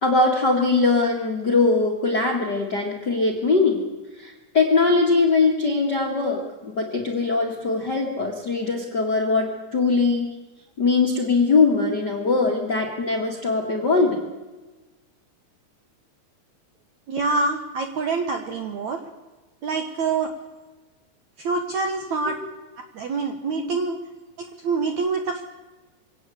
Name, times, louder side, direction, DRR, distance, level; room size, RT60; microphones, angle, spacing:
voice 1, 0.0-3.8 4.2-10.3 10.8-14.2 23.6-23.7, left 3 dB, 35° left, 2 dB, 1.7 m, -21 dB
voice 2, 17.1-19.1 19.6-20.3 21.4-22.4 22.9-24.0 24.6-25.4, right 4 dB, 70° right, 5 dB, 1.8 m, -25 dB
23.5 x 17.5 x 8.0 m, 1.2 s
omnidirectional pair, 5.0 m